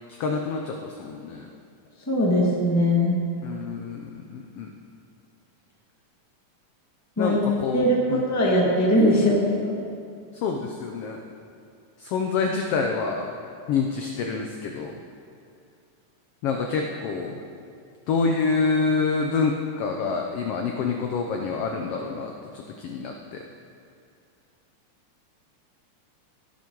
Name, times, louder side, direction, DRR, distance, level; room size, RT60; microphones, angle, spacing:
voice 1, 0.1-1.5 3.4-4.7 7.2-8.3 10.3-11.2 12.0-13.3 13.7-15.0 16.4-17.4 18.1-23.4, left 4 dB, 85° left, 2 dB, 1.3 m, -27 dB
voice 2, 2.1-3.2 7.2-7.4 7.7-9.8, equal, 10° left, -3 dB, 0.8 m, -21 dB
17.0 x 7.1 x 4.6 m, 2.4 s
omnidirectional pair, 3.5 m